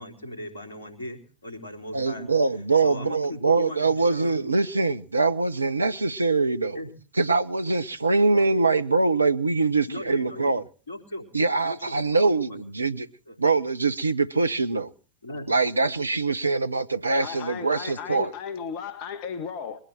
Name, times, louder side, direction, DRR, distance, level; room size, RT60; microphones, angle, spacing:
voice 1, 0.0-2.3 2.8-4.4 6.7-6.9 8.3-8.4 9.9-10.5 10.9-11.3 11.6-12.6 13.3-13.4 15.2-15.5, left 1 dB, 75° left, 3.9 m, -37 dB
voice 2, 1.9-6.8 7.2-10.6 11.3-13.1 13.4-14.9 15.5-18.3, right 3 dB, 80° right, 0.7 m, -23 dB
voice 3, 17.2-19.8, left 7 dB, 45° left, 1.7 m, -35 dB
21.5 x 14.0 x 4.3 m
figure-of-eight pair, 90°, 0 cm